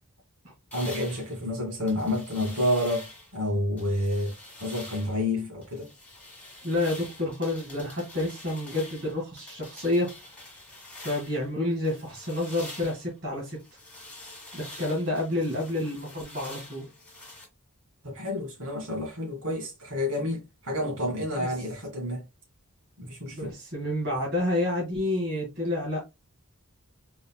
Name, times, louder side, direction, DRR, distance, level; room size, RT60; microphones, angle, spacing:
sound 1, 0.7-3.4 3.8-5.2 5.6-11.5 11.8-17.5, left 2 dB, 5° left, 1.7 m, -46 dB
voice 1, 0.7-4.3 4.6-5.9 18.0-22.2 23.0-23.5, left 1 dB, 75° right, 2.0 m, -29 dB
voice 2, 6.6-10.1 11.0-13.6 14.5-16.8 21.4-21.5 23.3-26.0, left 1 dB, 50° right, 1.6 m, -29 dB
3.9 x 3.8 x 2.2 m
head